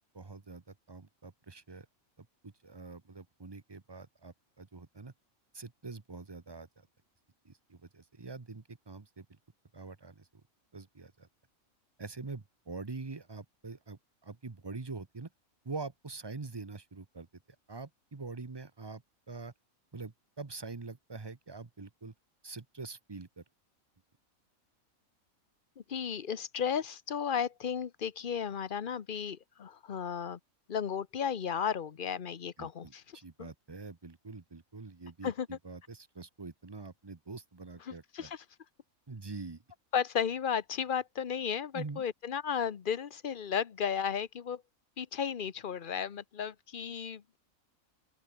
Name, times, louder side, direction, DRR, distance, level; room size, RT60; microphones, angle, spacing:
voice 1, 0.1-0.6 0.9-1.9 2.2-5.1 5.5-6.7 7.4-9.3 9.7-10.3 10.7-11.3 12.0-15.3 15.6-17.3 17.7-19.0 19.3-19.5 19.9-22.1 22.4-23.4 32.6-38.3 39.1-39.6 41.7-42.0, right 3 dB, 20° right, 0.8 m, -45 dB
voice 2, 25.8-30.4 30.7-33.0 33.4-33.5 35.2-35.6 37.9-38.4 39.9-44.6 45.0-47.4, left 7 dB, 45° left, 0.9 m, -34 dB
open air
omnidirectional pair, 1.5 m